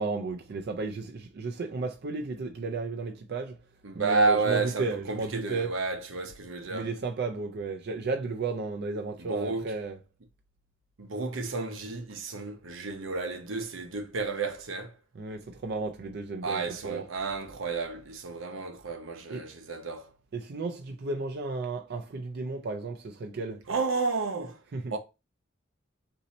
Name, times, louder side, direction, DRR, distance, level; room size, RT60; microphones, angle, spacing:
voice 1, 0.0-3.6 3.9-5.7 6.7-10.0 15.1-17.0 19.3-19.5 20.3-23.6 24.7-25.0, right 3 dB, 55° right, 0.4 m, -33 dB
voice 2, 3.8-6.9 9.2-9.7 11.0-14.9 16.4-20.1 23.7-24.6 24.9-25.0, right 4 dB, 85° right, 0.8 m, -31 dB
4.1 x 2.7 x 4.0 m
head